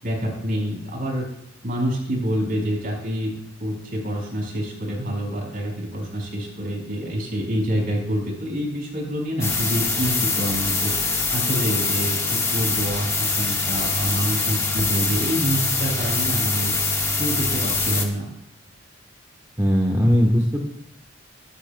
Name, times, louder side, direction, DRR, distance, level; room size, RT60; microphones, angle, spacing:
voice 1, 0.0-1.3 1.6-3.3 3.6-10.9 11.3-16.8 17.1-18.3, equal, 50° right, 0 dB, 4.7 m, -27 dB
sound 1, 9.4-18.1, left 3 dB, 15° left, 1.4 m, -24 dB
voice 2, 19.6-20.6, equal, 20° right, 0 dB, 1.1 m, -18 dB
22.5 x 10.0 x 2.2 m, 0.85 s
head